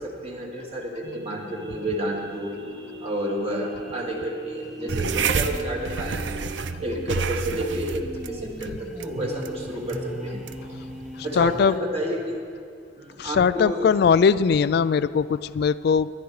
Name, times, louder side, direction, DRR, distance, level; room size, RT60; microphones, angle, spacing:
voice 1, 0.0-2.6 3.0-6.4 6.8-10.8 11.2-12.4 13.0-13.9, equal, 35° right, -1 dB, 2.3 m, -30 dB
sound 1, 1.0-8.5, right 1 dB, 65° right, 1.5 m, -41 dB
sound 2, 4.8-12.3, equal, ahead, 0.8 m, -40 dB
sound 3, 4.9-11.8, right 5 dB, 90° right, 0.6 m, -30 dB
voice 2, 11.4-11.7 13.2-16.1, left 6 dB, 60° left, 15 dB, 0.3 m, -20 dB
19.5 x 11.5 x 4.8 m, 2.3 s
head